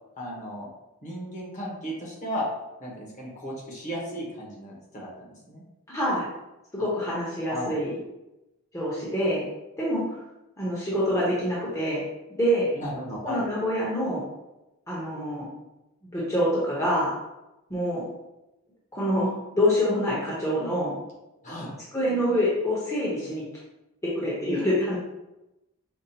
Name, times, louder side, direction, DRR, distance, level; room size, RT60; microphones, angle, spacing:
voice 1, 0.2-0.7 1.0-2.5 2.8-5.6 6.8-6.9 7.5-7.7 12.7-13.4 21.4-21.8, equal, 35° left, -3 dB, 0.9 m, -35 dB
voice 2, 5.9-6.3 6.7-8.0 8.7-9.5 9.8-10.2 10.6-12.0 12.4-12.7 13.2-14.2 14.9-15.5 16.1-17.2 17.7-18.0 18.9-20.9 21.9-23.4 24.0-25.0, equal, 15° left, -7 dB, 0.8 m, -26 dB
5.2 x 2.4 x 2.8 m, 0.95 s
head